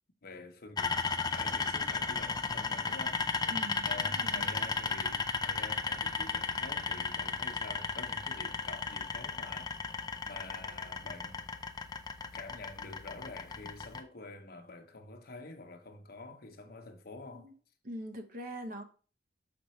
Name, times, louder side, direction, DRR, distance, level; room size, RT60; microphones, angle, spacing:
voice 1, 0.2-3.3 3.8-9.8 10.2-11.5 12.3-17.5, left 2 dB, 55° left, 0.9 m, -47 dB
sound 1, 0.8-14.0, left 4 dB, 20° left, 0.5 m, -35 dB
voice 2, 3.4-4.5 17.3-17.5 17.8-18.8, equal, 50° right, 0.9 m, -43 dB
6.7 x 5.2 x 3.1 m
head